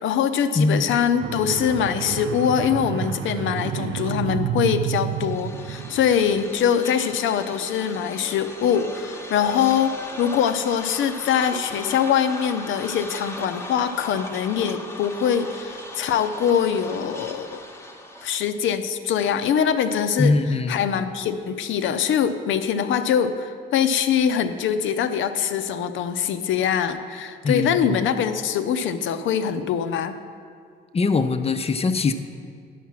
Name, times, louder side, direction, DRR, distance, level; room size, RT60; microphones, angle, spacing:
voice 1, 0.0-17.6 18.2-20.4 20.7-30.2, left 8 dB, 75° left, 10 dB, 0.6 m, -23 dB
voice 2, 0.5-1.0 20.2-20.9 27.4-28.0 30.9-32.1, left 3 dB, 30° left, 9 dB, 0.6 m, -22 dB
sound 1, 1.2-6.5, right 9 dB, 65° right, 0.4 m, -30 dB
sound 2, 5.0-18.6, left 1 dB, 15° left, 1.0 m, -38 dB
11.0 x 5.8 x 6.2 m, 2.2 s
cardioid pair, 90°, 20 cm